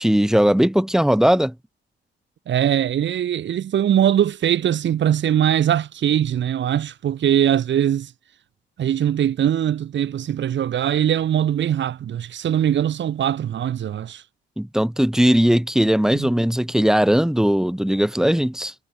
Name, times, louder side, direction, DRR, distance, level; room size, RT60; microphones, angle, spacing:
voice 1, 0.0-1.5 14.6-18.7, equal, 5° right, 5.5 m, -18 dB
voice 2, 2.5-8.1 8.8-14.2 16.1-16.3, right 10 dB, 65° right, 6.6 m, -21 dB
cardioid pair, 90°, 20 cm